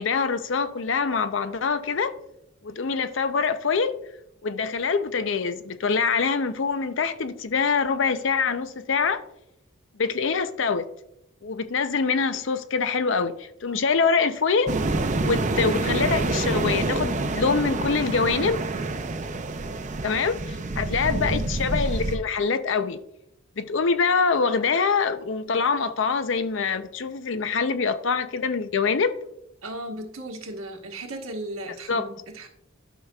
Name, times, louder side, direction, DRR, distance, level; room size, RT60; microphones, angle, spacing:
voice 1, 0.0-2.1 2.6-4.0 4.4-9.2 10.0-10.9 11.4-14.7 15.2-18.6 20.0-23.0 23.6-29.1 31.9-32.1, left 5 dB, 65° left, 0.5 m, -24 dB
sound 1, 14.7-22.2, right 2 dB, 35° right, 0.5 m, -27 dB
voice 2, 21.0-21.5 29.6-32.5, right 1 dB, 85° right, 1.3 m, -36 dB
12.0 x 5.7 x 2.3 m
head